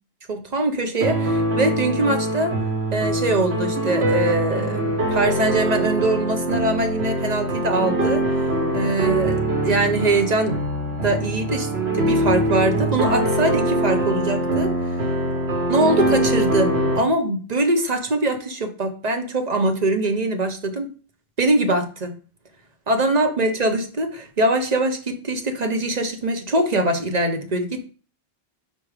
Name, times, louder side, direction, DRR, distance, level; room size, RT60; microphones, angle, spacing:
voice 1, 0.3-2.6 2.9-8.5 8.7-10.6 11.0-14.7 15.7-20.9 21.4-22.1 22.9-27.8, right 2 dB, 45° right, 5 dB, 0.9 m, -22 dB
sound 1, 1.0-17.0, right 1 dB, 80° right, 1.6 m, -23 dB
4.9 x 4.4 x 4.8 m, 0.38 s
omnidirectional pair, 1.1 m